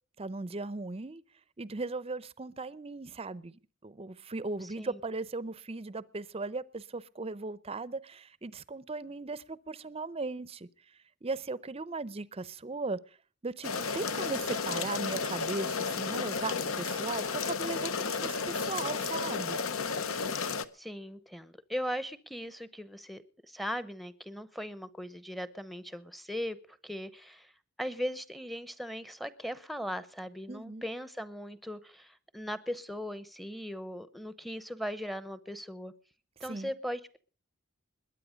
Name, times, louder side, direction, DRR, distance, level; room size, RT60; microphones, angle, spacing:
voice 1, 0.2-1.2 1.6-10.7 11.2-13.0 13.4-19.6 30.5-30.9 36.5-36.7, right 3 dB, 25° right, 0.6 m, -38 dB
sound 1, 13.6-20.7, left 5 dB, 75° left, 0.9 m, -33 dB
voice 2, 20.7-26.6 26.8-27.5 27.8-35.9 36.4-37.2, equal, ahead, 0.7 m, -39 dB
21.0 x 9.6 x 5.1 m
head